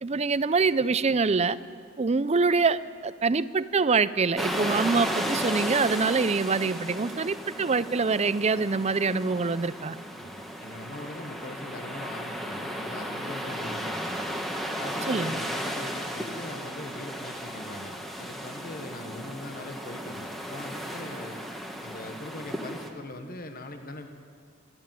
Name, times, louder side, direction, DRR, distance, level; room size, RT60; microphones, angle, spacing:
voice 1, 0.0-1.6 2.0-10.0 15.1-15.4, right 4 dB, 30° right, 16 dB, 0.5 m, -25 dB
sound 1, 4.4-22.9, equal, ahead, 1.5 m, -34 dB
voice 2, 10.2-14.2 14.8-21.4 21.8-24.1, left 1 dB, 45° left, 5 dB, 1.3 m, -41 dB
26.5 x 12.0 x 9.2 m, 2.2 s
head